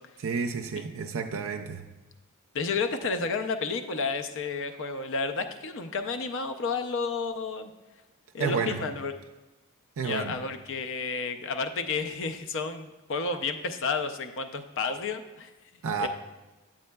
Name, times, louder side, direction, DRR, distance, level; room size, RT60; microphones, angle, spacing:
voice 1, 0.2-1.8 8.4-8.8 10.0-10.4 15.8-16.1, right 5 dB, 65° right, 4 dB, 0.4 m, -30 dB
voice 2, 2.5-7.7 8.3-9.1 10.0-15.5 16.0-16.1, left 4 dB, 60° left, 9 dB, 0.5 m, -31 dB
9.4 x 7.3 x 2.2 m, 1.1 s
head